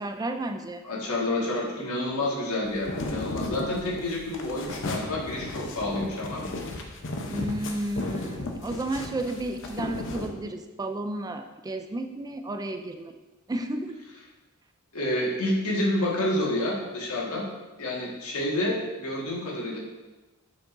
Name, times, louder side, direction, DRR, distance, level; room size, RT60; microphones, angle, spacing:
voice 1, 0.0-0.8 7.3-13.1 13.5-14.0, right 1 dB, 15° right, 7 dB, 0.3 m, -32 dB
voice 2, 0.8-6.8 14.9-17.5 17.8-19.8, left 1 dB, 90° left, -3 dB, 1.7 m, -29 dB
sound 1, 2.6-10.3, left 2 dB, 60° left, 0.8 m, -35 dB
7.5 x 6.0 x 2.6 m, 1.1 s
head